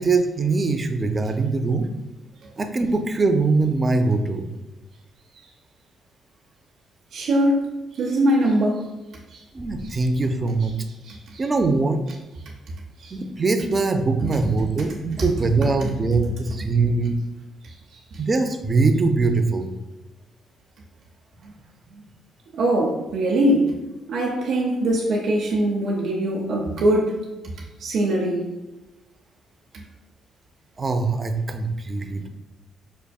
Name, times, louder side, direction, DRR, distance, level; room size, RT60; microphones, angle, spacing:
voice 1, 0.0-1.9 2.6-4.5 9.5-10.8 11.4-12.0 13.1-17.2 18.2-19.7 30.8-32.3, right 3 dB, 30° right, 6 dB, 0.4 m, -22 dB
voice 2, 7.1-7.6 7.9-8.9 9.3-9.4 11.0-11.4 13.0-13.1 14.3-14.4 15.8-15.9 17.6-18.0 21.4-21.5 21.9-22.0 22.5-23.7 24.1-27.2 27.4-27.5 27.8-28.4 29.7-29.8, right 1 dB, 70° right, -2 dB, 0.7 m, -22 dB
5.3 x 2.6 x 2.3 m, 1.0 s
cardioid pair, 90°, 0 cm